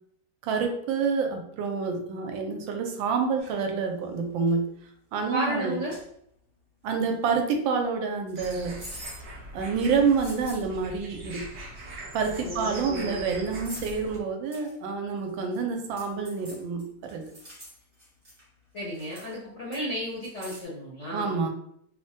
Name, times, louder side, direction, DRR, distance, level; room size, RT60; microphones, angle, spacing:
voice 1, 0.4-4.6 5.1-5.8 6.8-8.8 9.5-11.4 12.1-17.3 21.1-21.5, right 5 dB, 80° right, 4 dB, 1.3 m, -28 dB
sound 1, 3.4-3.6 4.2-4.5 5.4-5.5 5.9-6.1 8.3-9.3 9.9-10.7 11.8-11.9 12.1-12.5 13.5-14.1 14.5-14.7 15.2-15.6 16.0-18.5 18.8-19.4 19.7-20.6, equal, 25° right, 0.6 m, -46 dB
voice 2, 5.3-6.0 12.4-13.2 18.7-21.3, equal, 60° left, -7 dB, 0.7 m, -33 dB
sound 2, 8.4-14.2, right 1 dB, 65° right, 0.6 m, -41 dB
3.3 x 2.1 x 2.7 m, 0.70 s
omnidirectional pair, 2.1 m